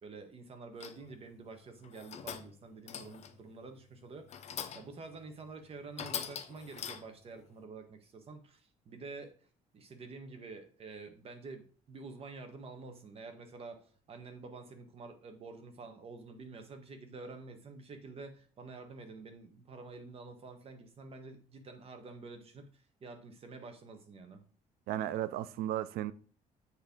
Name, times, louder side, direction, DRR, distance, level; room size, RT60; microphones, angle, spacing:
voice 1, 0.0-9.3 9.7-13.8 14.1-24.4, right 3 dB, 40° right, 1.2 m, -48 dB
sound 1, 0.8-1.2 1.8-2.6 2.9-3.4 4.3-5.0 5.4-5.5 6.0-7.3, left 8 dB, 45° left, 0.7 m, -42 dB
voice 2, 24.9-26.1, right 12 dB, 85° right, 0.5 m, -34 dB
8.4 x 3.3 x 5.1 m
cardioid pair, 135°, 15 cm